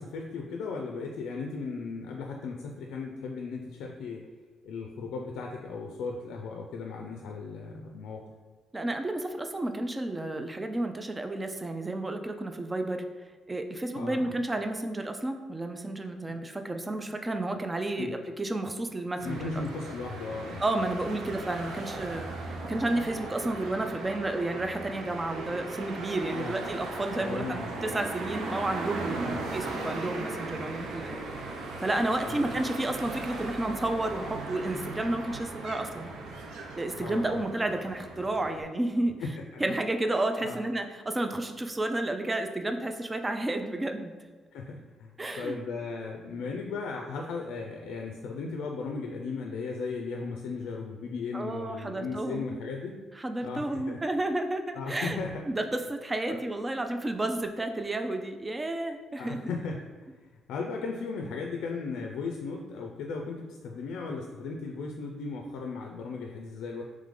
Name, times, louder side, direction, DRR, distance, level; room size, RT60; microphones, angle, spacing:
voice 1, 0.0-4.3 4.6-8.3 13.9-14.3 16.3-16.4 18.0-18.1 19.2-20.6 26.3-26.5 27.2-27.9 29.2-29.4 32.3-32.6 37.0-37.4 39.2-39.6 40.4-40.6 44.5-53.0 53.4-54.0 54.7-55.4 56.3-56.4 59.2-59.9 60.5-66.8, left 4 dB, 85° left, 2 dB, 0.4 m, -36 dB
voice 2, 8.7-13.0 13.5-19.4 20.6-31.2 31.8-36.1 36.8-39.2 39.6-44.1 45.2-45.6 51.3-52.5 53.2-55.2 55.5-59.5, right 2 dB, 20° right, 6 dB, 0.4 m, -31 dB
sound 1, 19.2-38.6, right 3 dB, 85° right, 0.7 m, -38 dB
3.6 x 3.1 x 3.7 m, 1.4 s
cardioid pair, 90°, 0 cm